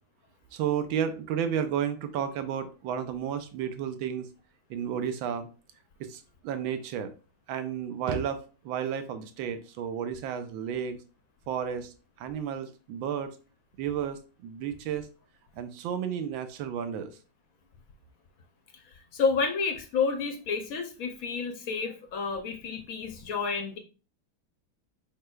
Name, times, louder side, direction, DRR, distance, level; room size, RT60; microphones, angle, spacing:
voice 1, 0.5-4.3 4.7-5.5 6.0-7.1 7.5-11.0 11.5-11.9 12.2-13.3 13.8-15.1 15.6-17.1, right 8 dB, 85° right, 9 dB, 1.4 m, -32 dB
voice 2, 18.7-23.8, left 5 dB, 65° left, 5 dB, 0.9 m, -30 dB
4.8 x 4.3 x 2.3 m, 0.34 s
omnidirectional pair, 2.1 m